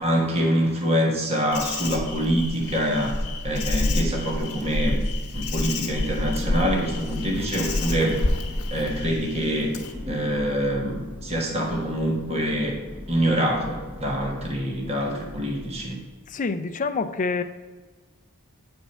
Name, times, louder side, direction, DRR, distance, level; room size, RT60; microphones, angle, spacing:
voice 1, 0.0-5.0 5.3-8.2 8.7-9.7 10.1-12.8 13.1-16.0, equal, 30° right, 0 dB, 1.2 m, -25 dB
Insect, 1.5-9.9, left 2 dB, 85° left, 1.1 m, -28 dB
Thunder, 5.4-16.3, left 1 dB, 5° right, 0.8 m, -39 dB
voice 2, 16.3-17.4, left 4 dB, 35° left, 10 dB, 0.4 m, -26 dB
8.0 x 4.4 x 5.4 m, 1.3 s
head